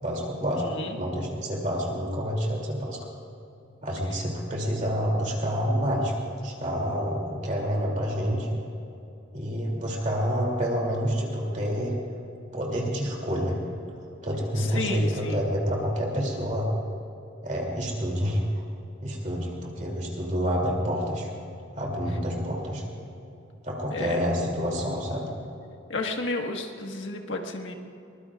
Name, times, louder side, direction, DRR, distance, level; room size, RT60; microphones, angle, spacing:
voice 1, 0.0-3.0 3.8-8.6 9.3-12.0 12.5-13.6 14.2-16.8 17.4-18.6 19.0-21.3 21.7-22.8 23.6-25.3, equal, 40° right, -2 dB, 2.8 m, -28 dB
voice 2, 0.6-1.0 14.6-15.4 23.9-24.2 25.9-27.7, left 2 dB, 75° left, 3 dB, 1.5 m, -32 dB
23.0 x 21.0 x 2.4 m, 2.7 s
head